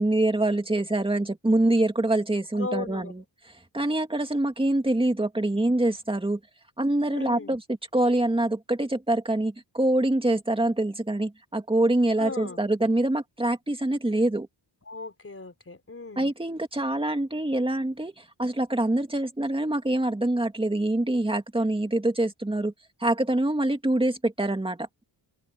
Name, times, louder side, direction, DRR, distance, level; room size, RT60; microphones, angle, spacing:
voice 1, 0.0-3.2 3.7-6.4 6.8-14.5 16.2-22.7 23.0-24.9, right 1 dB, 10° right, 2.2 m, -25 dB
voice 2, 2.6-3.1 7.1-7.6 12.2-12.6 14.9-16.3, left 3 dB, 30° left, 4.4 m, -36 dB
wide cardioid pair, 140°, 45 cm